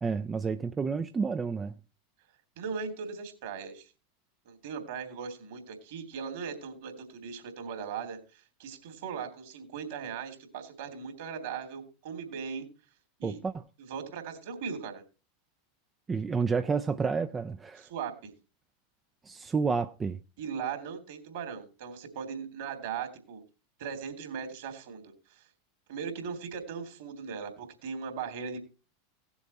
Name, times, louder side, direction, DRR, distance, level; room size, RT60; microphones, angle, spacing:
voice 1, 0.0-1.7 13.2-13.6 16.1-17.9 19.2-20.2, right 5 dB, 20° right, 0.6 m, -30 dB
voice 2, 2.6-3.9 4.4-12.7 13.2-13.4 13.8-15.0 17.8-18.3 20.4-23.4 23.8-25.4 25.9-28.6, right 6 dB, 60° right, 3.1 m, -38 dB
17.5 x 7.1 x 4.3 m
figure-of-eight pair, 85°, 0 cm